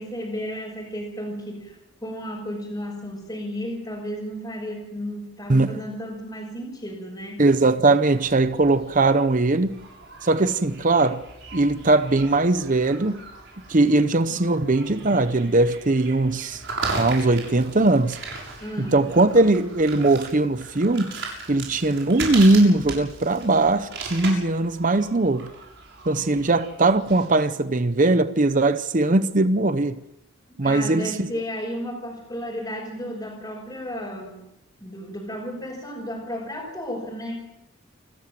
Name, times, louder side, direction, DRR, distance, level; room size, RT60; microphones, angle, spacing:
voice 1, 0.0-7.5 18.6-19.0 30.5-34.4 34.8-37.5, equal, 15° left, 5.5 m, -33 dB
voice 2, 5.5-5.8 7.4-9.8 10.2-11.2 11.5-13.2 13.7-16.6 17.0-18.2 18.8-21.1 21.5-25.5 26.1-30.0 30.6-31.3, right 2 dB, 40° right, 0.8 m, -20 dB
sound 1, 8.2-27.2, right 3 dB, 60° right, 7.3 m, -37 dB
28.5 x 13.5 x 7.6 m
head